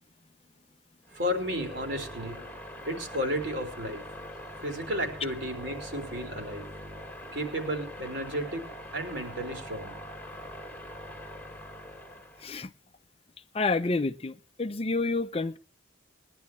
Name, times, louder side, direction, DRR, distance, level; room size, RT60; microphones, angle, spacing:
sound 1, 1.0-12.6, equal, 10° left, 1.9 m, -43 dB
voice 1, 1.1-2.4 2.8-4.0 4.6-6.6 7.3-8.7 8.9-10.0, equal, 60° right, 3.9 m, -33 dB
voice 2, 13.5-15.6, left 3 dB, 30° left, 0.6 m, -29 dB
21.5 x 11.0 x 3.2 m
head